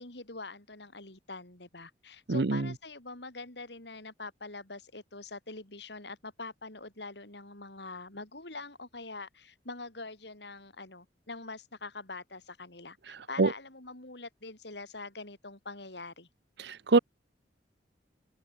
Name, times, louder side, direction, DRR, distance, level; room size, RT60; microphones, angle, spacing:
voice 1, 0.0-16.3, left 3 dB, 65° left, 4.4 m, -44 dB
voice 2, 2.3-2.7 13.4-13.5 16.6-17.0, right 3 dB, 65° right, 0.7 m, -24 dB
head